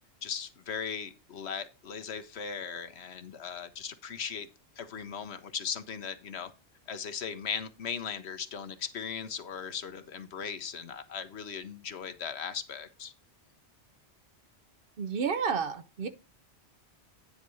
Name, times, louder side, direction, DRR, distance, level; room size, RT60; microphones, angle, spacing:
voice 1, 0.2-4.5 4.8-6.5 6.9-13.1, left 6 dB, 70° left, 1.2 m, -38 dB
voice 2, 15.0-16.1, right 6 dB, 60° right, 0.8 m, -30 dB
9.4 x 4.1 x 6.2 m
omnidirectional pair, 1.1 m